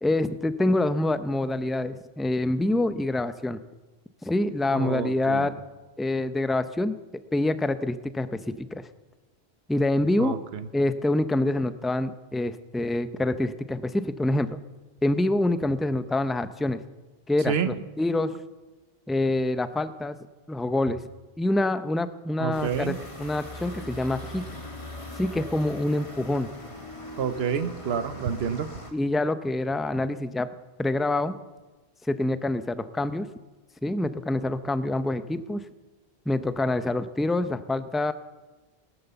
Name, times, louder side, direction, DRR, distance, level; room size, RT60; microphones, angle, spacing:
voice 1, 0.0-3.6 4.2-5.5 6.0-7.0 7.3-8.9 9.7-10.4 10.7-14.5 15.0-16.8 17.3-18.3 19.1-20.2 20.5-21.0 21.4-24.4 25.2-26.5 28.9-30.5 30.8-31.4 32.1-33.3 33.8-35.6 36.3-38.1, left 2 dB, ahead, 11 dB, 0.4 m, -26 dB
voice 2, 4.7-5.5 10.2-10.7 17.5-17.7 22.4-23.0 27.2-28.7, right 7 dB, 75° right, 11 dB, 1.1 m, -28 dB
evening street, 22.5-28.9, left 1 dB, 30° left, 2.1 m, -40 dB
18.5 x 11.0 x 7.0 m, 1.2 s
omnidirectional pair, 1.1 m